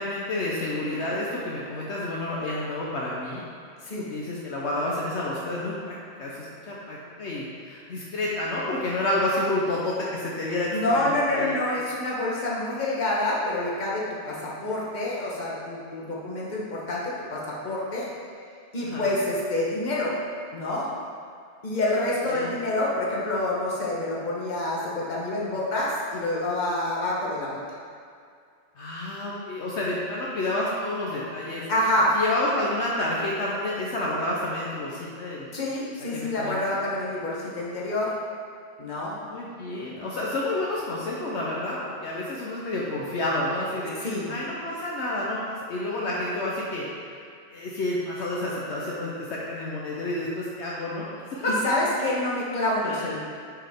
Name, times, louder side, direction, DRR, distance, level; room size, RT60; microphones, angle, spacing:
voice 1, 0.0-3.5 4.1-11.6 18.8-19.1 22.2-22.6 28.7-31.6 32.1-35.5 36.1-36.8 39.3-47.2 47.5-51.5 52.8-53.1, left 1 dB, 65° left, -5 dB, 1.1 m, -30 dB
voice 2, 10.7-18.1 18.7-20.1 20.5-20.9 21.6-27.6 31.7-32.2 35.5-38.1 38.8-39.2 44.0-44.3 51.6-53.2, left 1 dB, 40° left, -5 dB, 1.3 m, -27 dB
8.9 x 4.8 x 3.6 m, 2.3 s
omnidirectional pair, 1.3 m